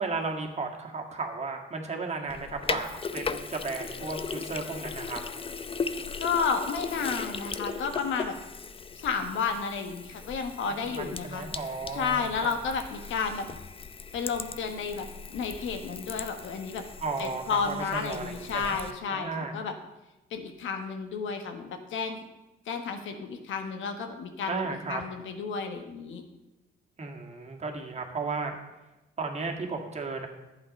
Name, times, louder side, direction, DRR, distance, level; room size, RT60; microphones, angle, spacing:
voice 1, 0.0-5.2 10.9-12.5 17.0-18.8 19.1-19.6 24.5-25.0 27.0-28.6 29.2-30.3, right 4 dB, 35° right, 2 dB, 1.9 m, -34 dB
Sink (filling or washing), 2.3-18.9, left 5 dB, 30° left, 0.6 m, -38 dB
voice 2, 6.2-8.4 8.9-11.5 11.9-13.5 14.1-15.1 15.3-16.8 17.2-19.7 20.3-22.3 22.7-26.2, left 5 dB, 75° left, 6 dB, 1.4 m, -32 dB
11.0 x 8.3 x 5.3 m, 1.0 s
cardioid pair, 90°, 20 cm